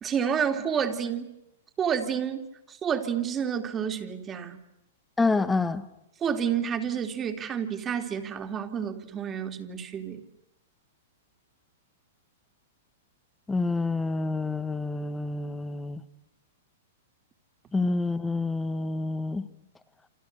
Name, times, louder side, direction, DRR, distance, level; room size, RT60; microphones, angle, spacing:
voice 1, 0.0-1.3 1.8-4.6 6.2-10.2, right 7 dB, 25° right, 3.1 m, -29 dB
voice 2, 5.2-5.8 13.5-16.0 17.7-19.5, left 3 dB, 10° left, 1.7 m, -27 dB
29.0 x 28.5 x 6.8 m
hypercardioid pair, 120°, 0 cm